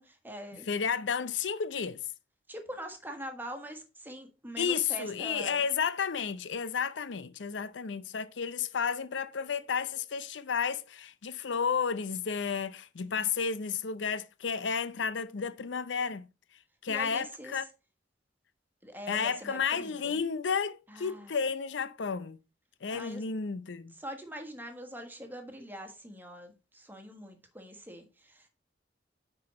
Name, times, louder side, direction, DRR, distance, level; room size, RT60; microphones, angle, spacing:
voice 1, 0.0-0.7 2.5-5.6 13.0-13.3 16.9-17.6 18.8-20.2 20.9-21.4 22.9-23.2 24.0-28.5, equal, 10° right, 1.6 m, -43 dB
voice 2, 0.7-2.0 4.6-16.3 16.8-17.6 19.1-22.4 22.8-23.9, left 6 dB, 90° left, 0.6 m, -32 dB
9.5 x 4.6 x 4.2 m
head